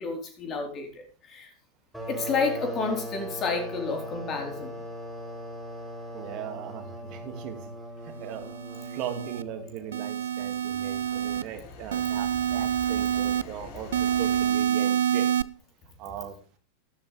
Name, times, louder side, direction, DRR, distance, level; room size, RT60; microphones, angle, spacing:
voice 1, 0.0-1.5 2.1-4.7, left 4 dB, 30° left, 3 dB, 4.2 m, -30 dB
sound 1, 1.9-10.3, equal, ahead, 7.0 m, -39 dB
voice 2, 6.1-7.7 8.0-8.5 8.8-15.3 16.0-16.4, right 9 dB, 40° right, 6 dB, 2.4 m, -39 dB
sound 2, 8.3-9.4 9.9-11.4 11.9-13.4 13.9-15.4, right 9 dB, 65° right, 0.4 m, -27 dB
sound 3, 10.0-14.7, left 3 dB, 45° left, 3.2 m, -45 dB
13.0 x 13.0 x 3.5 m, 0.38 s
figure-of-eight pair, 90°, 0 cm